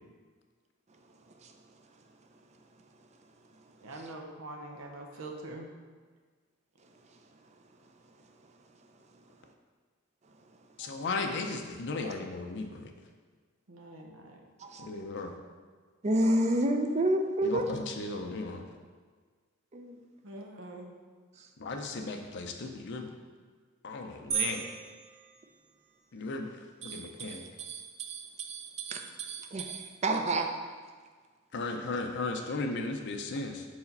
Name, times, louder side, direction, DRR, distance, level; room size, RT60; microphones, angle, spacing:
voice 1, 3.8-5.7 13.7-14.4 20.2-20.9, right 2 dB, 90° right, 1 dB, 0.8 m, -44 dB
voice 2, 10.8-12.9 14.8-15.3 17.4-18.6 21.6-23.1 23.8-24.7 26.1-26.5 26.8-27.4 31.5-33.7, left 3 dB, 55° left, 3 dB, 0.5 m, -36 dB
voice 3, 14.6-14.9 16.0-17.7 19.7-20.0 21.4-21.5 26.8-30.5, right 1 dB, 35° right, 5 dB, 0.5 m, -31 dB
sound 1, 24.3-26.1, right 8 dB, 70° right, 1.2 m, -36 dB
4.8 x 4.2 x 5.3 m, 1.5 s
head